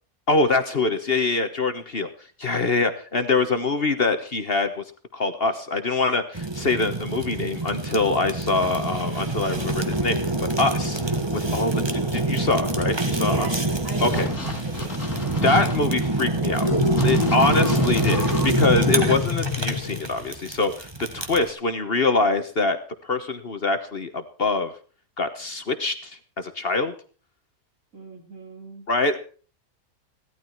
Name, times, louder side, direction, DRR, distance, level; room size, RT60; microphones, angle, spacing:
voice 1, 0.3-2.1 2.4-4.8 5.1-10.3 10.6-11.0 11.3-13.5 14.0-14.3 15.4-16.7 17.0-20.9 21.1-24.7 25.2-26.9 28.9-29.2, left 3 dB, 45° left, 9 dB, 1.3 m, -24 dB
Fire, 6.3-21.5, right 2 dB, 20° right, 1.5 m, -26 dB
voice 2, 13.1-15.0 17.2-17.4 27.9-28.9, right 1 dB, 65° right, 1 dB, 4.9 m, -39 dB
sound 1, 14.0-15.8 17.0-18.5, left 2 dB, 60° left, 3.0 m, -33 dB
sound 2, 16.7-20.2, left 5 dB, 25° left, 1.1 m, -27 dB
17.0 x 12.5 x 4.5 m, 0.39 s
omnidirectional pair, 1.5 m